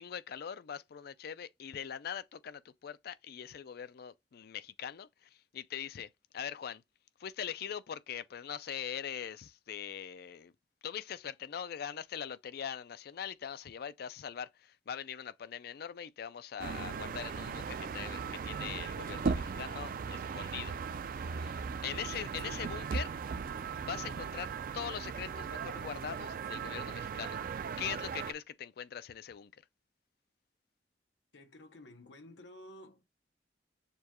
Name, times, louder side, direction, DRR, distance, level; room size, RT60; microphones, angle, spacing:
voice 1, 0.0-6.8 7.2-10.5 10.8-20.8 21.3-23.1 23.8-27.4 27.8-29.5, left 8 dB, 60° left, 0.4 m, -42 dB
sound 1, 16.6-28.3, right 5 dB, 55° right, 0.4 m, -38 dB
voice 2, 31.3-33.0, left 1 dB, 90° left, 0.8 m, -52 dB
6.7 x 2.3 x 2.9 m
head